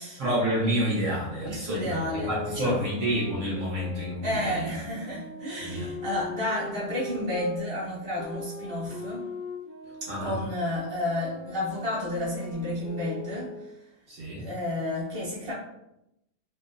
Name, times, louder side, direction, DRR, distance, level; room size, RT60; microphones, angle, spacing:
voice 1, 0.2-4.7 5.6-5.9 10.1-10.4 14.1-14.4, equal, 65° right, -6 dB, 1.0 m, -29 dB
voice 2, 1.4-2.8 4.2-9.3 10.0-13.9 14.4-15.5, left 1 dB, 25° right, -8 dB, 0.8 m, -31 dB
sound 1, 1.9-7.6 8.2-13.8, left 4 dB, 75° left, 0.5 m, -41 dB
2.8 x 2.0 x 2.3 m, 0.85 s
omnidirectional pair, 1.6 m